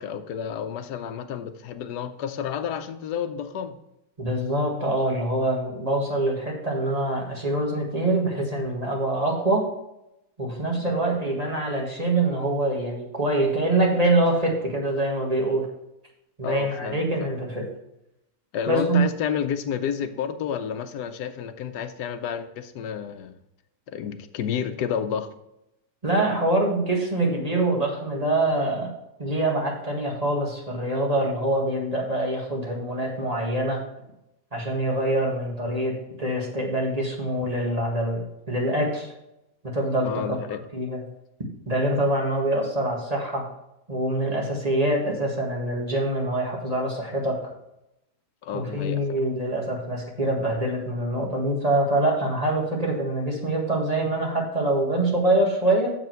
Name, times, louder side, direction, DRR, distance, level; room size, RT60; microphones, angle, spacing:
voice 1, 0.0-3.8 10.8-10.9 16.4-17.3 18.5-23.4 23.9-25.3 40.0-40.6 48.4-49.2, left 8 dB, 90° left, 10 dB, 1.3 m, -30 dB
voice 2, 4.2-9.6 10.4-15.7 16.4-17.6 18.7-19.0 26.0-28.9 29.2-33.8 34.5-38.2 38.5-39.1 39.7-40.4 40.7-41.0 41.7-43.5 43.9-47.4 48.5-55.9, right 1 dB, 25° right, -1 dB, 1.7 m, -25 dB
7.8 x 6.9 x 4.5 m, 0.86 s
omnidirectional pair, 1.7 m